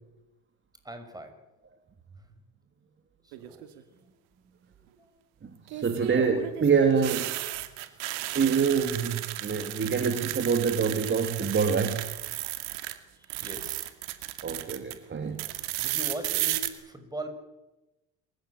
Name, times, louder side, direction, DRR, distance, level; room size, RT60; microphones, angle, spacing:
voice 1, 0.8-1.3 3.2-3.7 5.0-5.1 13.2-13.9 15.8-17.3, right 1 dB, 10° right, 8 dB, 6.1 m, -40 dB
sound 1, 3.3-3.8 5.7-12.9 13.2-14.9 15.4-16.7, right 17 dB, 90° right, 2.3 m, -34 dB
voice 2, 5.7-7.3 8.3-12.0 14.4-15.4, right 6 dB, 30° right, 7 dB, 2.7 m, -26 dB
27.0 x 16.0 x 9.9 m, 1.0 s
supercardioid pair, 90°, 38 cm